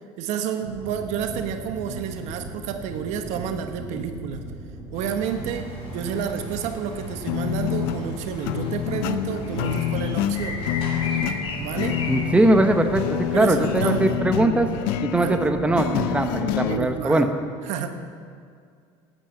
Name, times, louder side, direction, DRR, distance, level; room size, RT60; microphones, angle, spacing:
voice 1, 0.2-4.5 4.9-10.7 11.6-12.0 13.3-14.2 14.6-14.7 15.1-15.5 16.6-17.2 17.7-17.9, right 7 dB, 70° right, 7 dB, 1.1 m, -30 dB
sound 1, 0.6-17.0, right 2 dB, 45° right, 2.7 m, -38 dB
sound 2, 4.9-14.1, left 3 dB, 50° left, 3.5 m, -37 dB
sound 3, 7.2-16.8, left 11 dB, 85° left, 0.6 m, -27 dB
voice 2, 12.1-14.7 15.0-17.3, right 2 dB, 10° right, 6 dB, 0.9 m, -21 dB
11.0 x 9.1 x 7.8 m, 2.2 s
supercardioid pair, 110°, 12 cm